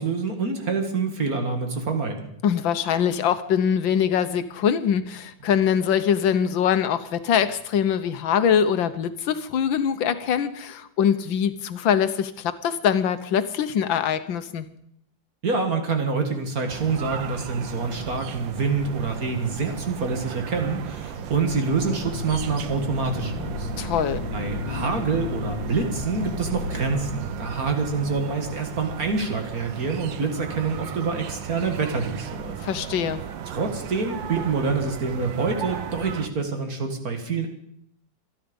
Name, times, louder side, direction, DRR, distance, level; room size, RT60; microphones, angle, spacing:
voice 1, 0.0-2.3 15.4-23.7 24.3-32.6 33.5-37.5, right 4 dB, 50° right, 5 dB, 2.4 m, -26 dB
voice 2, 2.4-14.7 23.8-24.3 32.6-33.2, left 8 dB, 80° left, 11 dB, 1.7 m, -23 dB
sound 1, 16.7-36.3, right 9 dB, 80° right, 1.7 m, -36 dB
sound 2, 21.1-28.1, left 4 dB, 60° left, 2.2 m, -34 dB
26.5 x 10.0 x 5.3 m, 0.72 s
omnidirectional pair, 2.1 m